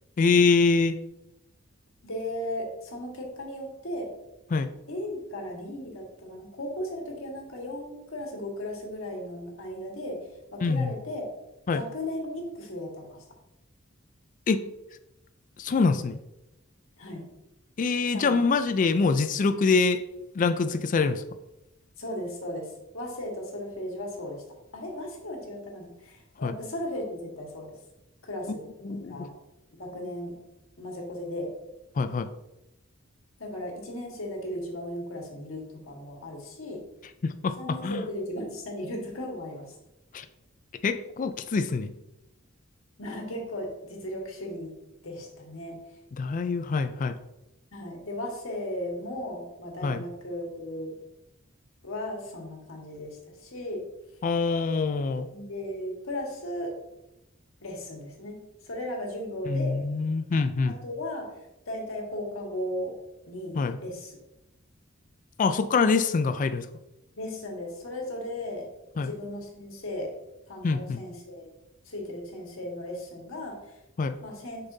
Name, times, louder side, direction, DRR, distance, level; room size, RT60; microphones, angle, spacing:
voice 1, 0.2-1.0 4.5-4.7 10.6-10.9 11.7-11.8 14.5-14.6 15.6-16.2 17.8-20.0 20.3-21.2 26.4-26.5 28.8-29.3 32.0-32.3 37.2-37.6 37.8-38.0 40.1-40.3 40.8-41.9 46.2-47.2 49.8-50.0 54.2-55.3 59.5-60.7 63.6-63.8 65.4-66.7 69.0-69.1 70.6-71.0 74.0-74.1, left 4 dB, 40° left, 10 dB, 0.4 m, -25 dB
voice 2, 2.0-4.1 4.9-10.2 10.5-11.3 11.7-13.2 17.0-17.3 18.1-18.4 22.0-24.4 24.7-27.7 28.2-28.7 29.1-29.3 29.8-30.3 30.8-31.5 33.4-36.8 37.6-39.7 43.0-44.7 45.0-45.8 47.7-51.0 51.8-53.8 55.3-56.7 57.6-58.4 58.6-59.8 60.7-61.3 61.7-62.9 63.3-64.2 67.2-68.7 69.0-70.1 70.5-71.5 71.8-73.8 74.2-74.7, left 1 dB, 80° left, 0 dB, 1.6 m, -36 dB
6.9 x 5.4 x 2.7 m, 0.90 s
head